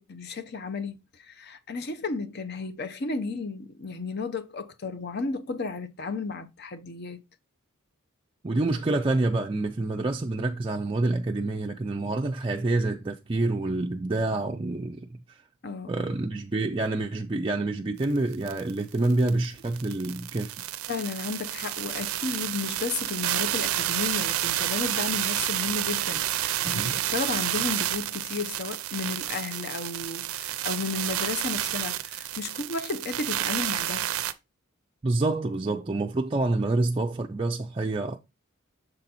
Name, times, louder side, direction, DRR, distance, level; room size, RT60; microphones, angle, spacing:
voice 1, 0.0-7.2 15.6-16.2 20.9-34.1, left 4 dB, 50° left, 0.7 m, -33 dB
voice 2, 8.4-15.4 15.9-20.6 26.6-27.0 35.0-38.2, right 2 dB, 25° right, 0.4 m, -27 dB
sound 1, 18.0-18.1 18.3-34.3, right 13 dB, 80° right, 0.5 m, -30 dB
6.8 x 4.0 x 4.2 m
head